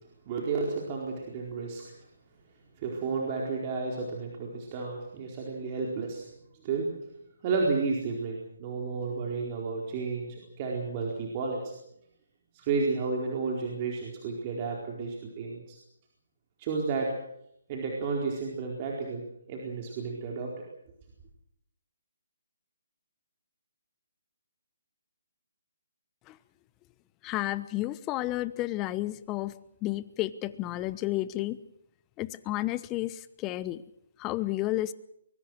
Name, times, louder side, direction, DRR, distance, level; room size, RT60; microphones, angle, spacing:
voice 1, 0.2-2.0 2.8-6.3 6.6-7.0 7.4-11.7 12.5-15.8 16.6-17.1 17.7-20.7, right 4 dB, 30° right, -1 dB, 4.4 m, -32 dB
voice 2, 27.2-29.5 29.8-31.6 32.2-33.8 34.2-34.9, left 16 dB, 20° left, 16 dB, 1.0 m, -31 dB
24.0 x 22.5 x 6.4 m, 0.76 s
figure-of-eight pair, 150°, 0 cm